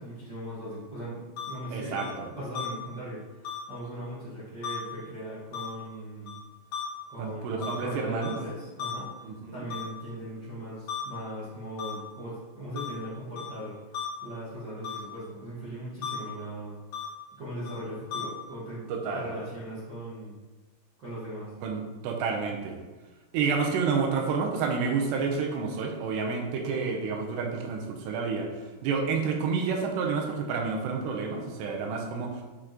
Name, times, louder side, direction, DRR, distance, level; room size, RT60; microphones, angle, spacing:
voice 1, 0.0-6.3 7.1-13.7 14.2-16.8 17.4-18.8 19.1-20.3 21.0-21.5, right 1 dB, 50° right, -11 dB, 1.3 m, -39 dB
sound 1, 1.4-1.5 2.0-2.1 2.5-2.7 3.4-3.6 4.6-4.8 5.5-5.7 6.3-6.4 6.7-6.8 7.6-7.7 8.2-8.3 8.8-8.9 9.7-9.8 10.9-11.0 11.8-11.9 12.8-12.9 13.4-13.5 13.9-14.1 14.8-15.0 16.0-16.1 16.9-17.1 17.7-17.8 18.1-18.2, left 9 dB, 80° left, 1.5 m, -35 dB
voice 2, 1.7-2.3 7.2-8.3 9.2-9.7 18.9-19.3 21.6-22.8 23.3-28.5 28.8-32.4, right 5 dB, 85° right, 2 dB, 2.9 m, -29 dB
7.9 x 5.0 x 3.0 m, 1.3 s
omnidirectional pair, 5.0 m